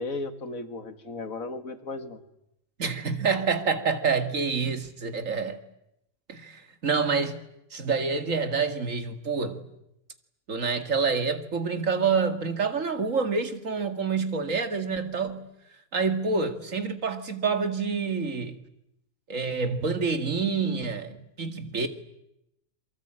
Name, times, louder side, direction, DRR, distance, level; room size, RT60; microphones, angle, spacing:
voice 1, 0.0-2.2, left 3 dB, 85° left, 2.4 m, -35 dB
voice 2, 2.8-5.6 6.3-7.4 7.7-9.6 10.5-15.4 15.9-18.6 19.3-21.9, right 5 dB, 70° right, 2.4 m, -27 dB
27.5 x 24.0 x 8.9 m
omnidirectional pair, 1.4 m